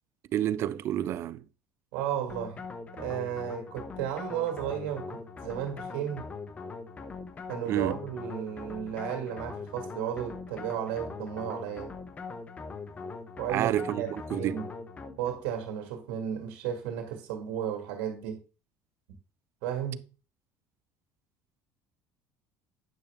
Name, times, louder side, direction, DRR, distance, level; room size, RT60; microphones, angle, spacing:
voice 1, 0.3-1.4 7.7-8.0 13.5-14.6, right 11 dB, 45° right, 0.5 m, -29 dB
voice 2, 1.9-2.6 2.9-6.3 7.5-11.9 13.4-14.7 15.2-18.4 19.6-20.0, right 9 dB, 85° right, 1.9 m, -34 dB
sound 1, 2.3-15.5, left 4 dB, 25° left, 1.0 m, -41 dB
9.2 x 6.3 x 3.4 m
cardioid pair, 135°, 6 cm